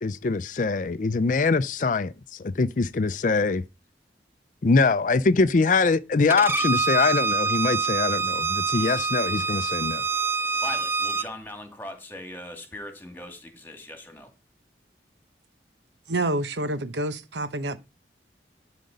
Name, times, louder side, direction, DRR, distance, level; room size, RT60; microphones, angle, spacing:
voice 1, 0.0-2.1 2.4-3.6 4.6-10.0, left 4 dB, 45° left, 0.5 m, -23 dB
Bowed string instrument, 6.3-11.3, right 5 dB, 15° right, 0.4 m, -26 dB
voice 2, 10.6-14.3, left 1 dB, 10° left, 2.3 m, -40 dB
voice 3, 16.1-17.8, right 2 dB, 85° right, 1.0 m, -28 dB
11.5 x 5.2 x 5.2 m
head